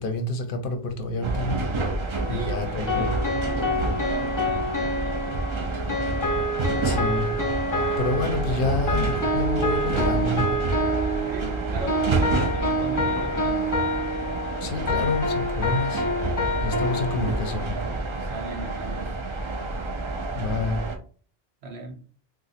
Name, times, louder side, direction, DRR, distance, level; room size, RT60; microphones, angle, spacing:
voice 1, 0.0-1.6 2.3-3.1 6.8-7.3 7.7-10.5 14.6-16.1 16.6-17.8 20.3-20.8, left 2 dB, 65° left, 0.7 m, -28 dB
sound 1, 1.2-21.0, right 3 dB, 40° right, 0.4 m, -29 dB
sound 2, 2.2-17.6, equal, 25° left, 0.4 m, -27 dB
voice 2, 2.3-5.4 11.3-13.7 18.2-19.2 21.6-22.0, right 2 dB, 80° right, 1.1 m, -38 dB
4.0 x 2.4 x 2.4 m
omnidirectional pair, 1.0 m